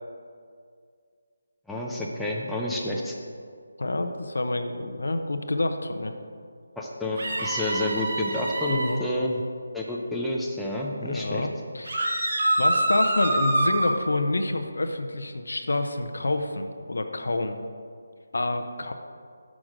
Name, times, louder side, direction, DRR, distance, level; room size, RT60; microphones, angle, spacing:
voice 1, 1.7-3.1 6.8-9.4 9.7-11.5, left 1 dB, ahead, -4 dB, 0.5 m, -29 dB
voice 2, 3.8-6.1 8.7-9.0 11.0-11.5 11.7-12.1 12.6-17.6 18.3-18.9, left 2 dB, 80° left, 6 dB, 0.7 m, -28 dB
sound 1, 7.2-9.0 11.9-13.9, right 1 dB, 50° right, 1.1 m, -25 dB
6.2 x 6.0 x 5.0 m, 2.2 s
figure-of-eight pair, 165°, 0 cm